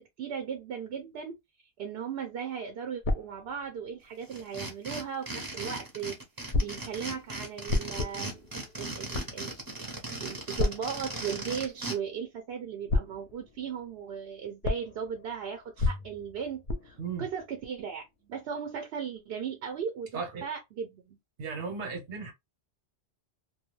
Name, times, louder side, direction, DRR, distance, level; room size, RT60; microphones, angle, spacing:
voice 1, 0.0-1.4 1.8-6.2 6.6-8.4 8.8-9.5 10.2-21.2, right 7 dB, 70° right, 0.8 m, -37 dB
sound 1, 3.0-5.0 6.5-12.5 12.9-18.4, left 3 dB, 55° left, 0.7 m, -35 dB
sound 2, 4.3-12.0, right 2 dB, 25° right, 0.7 m, -38 dB
voice 2, 20.1-20.4 21.4-22.3, right 5 dB, 90° right, 1.2 m, -36 dB
2.3 x 2.3 x 3.0 m
omnidirectional pair, 1.1 m